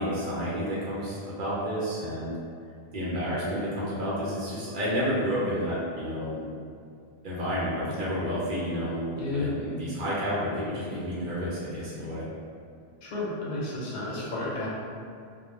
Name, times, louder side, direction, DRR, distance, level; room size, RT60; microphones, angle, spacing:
voice 1, 0.0-2.3 2.9-6.4 7.2-12.2, equal, 55° right, -8 dB, 0.8 m, -30 dB
voice 2, 13.0-14.7, left 2 dB, 90° left, -5 dB, 1.0 m, -32 dB
2.2 x 2.1 x 3.1 m, 2.3 s
omnidirectional pair, 1.1 m